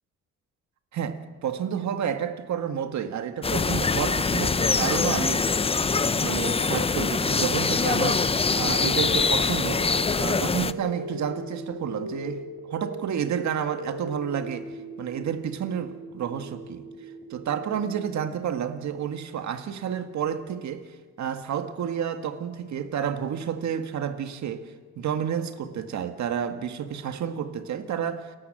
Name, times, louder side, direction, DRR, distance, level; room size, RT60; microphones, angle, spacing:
voice 1, 0.9-5.5 6.2-9.8 10.2-12.4 12.7-14.7 15.0-16.8 17.3-20.9 21.2-24.6 25.0-28.3, right 8 dB, 65° right, 8 dB, 1.8 m, -30 dB
sound 1, 3.4-10.7, left 4 dB, 20° left, 0.6 m, -24 dB
sound 2, 8.2-18.2, right 1 dB, 25° right, 4.0 m, -39 dB
29.5 x 12.5 x 7.7 m, 1.4 s
cardioid pair, 90°, 30 cm